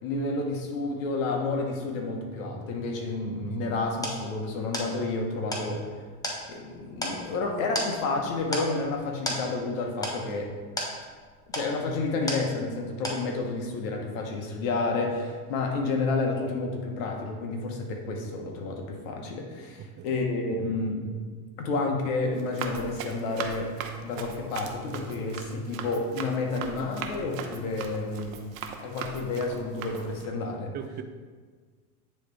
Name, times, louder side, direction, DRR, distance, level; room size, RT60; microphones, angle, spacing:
voice 1, 0.0-5.9 6.5-10.5 11.5-21.1 21.6-23.8 24.0-28.4 28.8-30.8, left 3 dB, 60° left, 1 dB, 1.4 m, -30 dB
sound 1, 3.3-12.8 13.0-13.6, equal, 10° left, 1.1 m, -35 dB
voice 2, 19.8-20.2 28.8-28.9 30.7-31.0, right 9 dB, 25° right, 8 dB, 0.4 m, -40 dB
Run, 22.3-30.3, right 6 dB, 65° right, 0.9 m, -39 dB
9.9 x 3.4 x 3.3 m, 1.5 s
hypercardioid pair, 95°, 44 cm